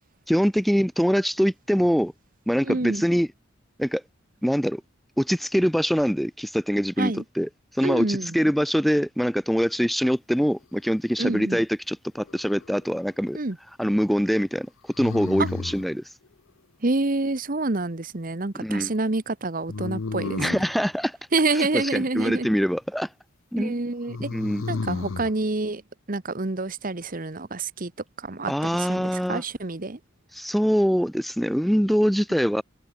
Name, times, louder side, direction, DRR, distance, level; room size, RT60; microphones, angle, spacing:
voice 1, 0.3-2.1 2.5-3.3 3.8-4.0 4.4-4.8 5.2-7.5 7.8-13.4 13.8-14.7 15.0-16.0 18.5-18.9 20.4-21.2 21.5-23.1 23.5-23.8 24.3-24.7 28.5-29.4 30.3-32.6, equal, ahead, 0.8 m, -23 dB
voice 2, 2.6-3.0 7.0-7.2 7.8-8.4 11.2-11.6 13.3-13.6 15.4-15.5 16.8-20.5 21.3-22.5 23.6-24.3 24.7-25.8 26.1-27.9 28.2-30.0, right 2 dB, 40° right, 1.1 m, -27 dB
sound 1, 12.2-12.9 14.9-15.9 19.7-20.7 24.1-25.3, left 3 dB, 80° left, 0.7 m, -32 dB
head